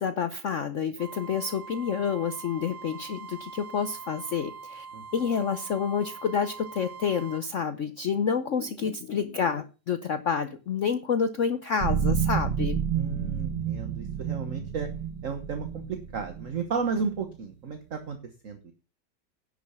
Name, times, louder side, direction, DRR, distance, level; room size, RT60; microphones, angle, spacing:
voice 1, 0.0-4.9 5.1-12.8, left 6 dB, 55° left, 11 dB, 0.9 m, -28 dB
sound 1, 1.0-7.4 11.8-17.8, right 8 dB, 75° right, 1.7 m, -33 dB
voice 2, 12.9-14.9 15.2-18.2 18.4-18.7, right 5 dB, 50° right, 6 dB, 1.5 m, -33 dB
10.5 x 6.4 x 6.9 m, 0.34 s
omnidirectional pair, 1.9 m